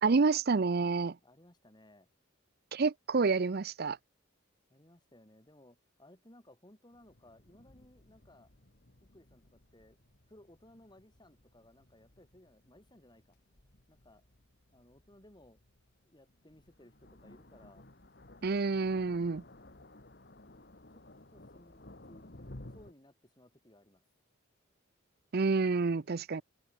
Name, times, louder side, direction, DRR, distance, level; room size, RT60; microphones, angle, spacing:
voice 1, 0.0-1.2 2.7-4.0 18.4-19.4 25.3-26.4, right 4 dB, 50° right, 0.5 m, -28 dB
voice 2, 1.2-2.1 4.7-8.5 9.0-10.0 10.3-13.4 13.9-14.3 14.7-15.6 16.0-17.8 20.9-21.0 21.3-22.3 22.7-24.0, left 1 dB, 20° left, 3.0 m, -60 dB
sound 1, 6.9-22.9, left 1 dB, 50° left, 2.2 m, -56 dB
open air
head